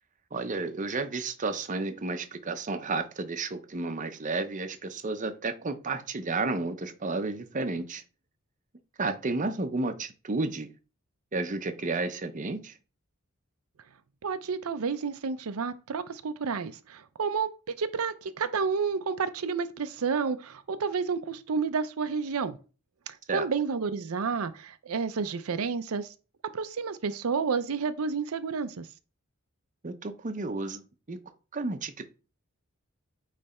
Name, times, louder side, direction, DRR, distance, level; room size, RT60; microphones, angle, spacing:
voice 1, 0.3-8.0 9.0-10.7 11.3-12.7 23.3-23.5 29.8-31.2 31.5-32.1, right 3 dB, 35° right, 0.7 m, -32 dB
voice 2, 14.2-22.6 23.1-26.1 26.5-28.9, right 5 dB, 85° right, 0.5 m, -30 dB
8.8 x 3.3 x 4.3 m
head